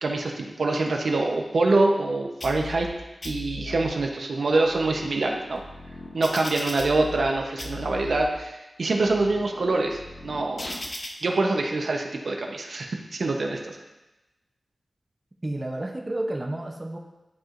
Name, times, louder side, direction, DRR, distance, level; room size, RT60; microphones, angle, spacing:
voice 1, 0.0-2.9 3.2-5.6 6.1-10.8 11.2-13.8, right 2 dB, 65° right, 2 dB, 0.8 m, -25 dB
sound 1, 2.4-2.9 3.2-3.9 4.5-7.3 7.6-8.3 8.9-11.1, left 2 dB, 50° left, 1.0 m, -38 dB
voice 2, 15.4-17.0, right 1 dB, 25° right, 1 dB, 0.7 m, -31 dB
12.0 x 4.6 x 2.5 m, 1.0 s
wide cardioid pair, 110°, 0 cm